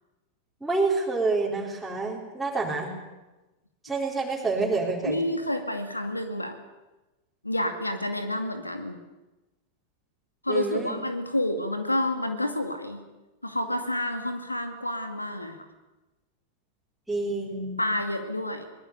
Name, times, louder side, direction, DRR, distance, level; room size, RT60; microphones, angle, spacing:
voice 1, 0.6-2.9 3.8-5.2 10.5-11.0 17.1-17.8, right 3 dB, 5° right, -5 dB, 4.3 m, -28 dB
voice 2, 5.0-6.6 7.4-9.0 10.4-13.0 13.4-15.6 17.8-18.6, left 1 dB, 85° left, 7 dB, 2.2 m, -29 dB
23.5 x 20.5 x 6.9 m, 1.1 s
figure-of-eight pair, 90°, 0 cm